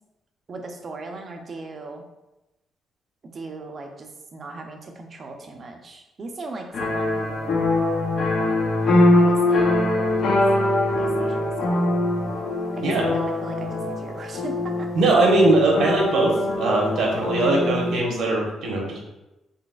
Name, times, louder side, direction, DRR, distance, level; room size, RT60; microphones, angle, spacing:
voice 1, 0.5-2.0 3.2-7.5 8.4-8.7 9.1-10.4 10.9-11.9 12.7-14.9, right 3 dB, 45° right, 4 dB, 0.6 m, -38 dB
sound 1, 6.7-18.0, left 1 dB, 60° left, 0.8 m, -22 dB
voice 2, 14.9-19.1, right 2 dB, 75° right, -1 dB, 1.1 m, -20 dB
4.0 x 3.5 x 2.4 m, 0.97 s
cardioid pair, 90°, 0 cm